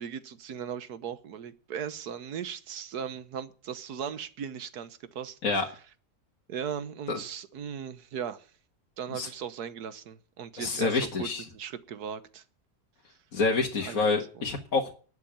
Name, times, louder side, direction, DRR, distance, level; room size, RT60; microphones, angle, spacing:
voice 1, 0.0-5.4 6.5-8.5 9.0-12.4 13.8-14.1 14.4-14.5, right 8 dB, 70° right, 1.5 m, -38 dB
voice 2, 10.6-11.4 13.3-14.9, left 4 dB, 55° left, 2.0 m, -27 dB
12.0 x 8.6 x 8.7 m
omnidirectional pair, 1.8 m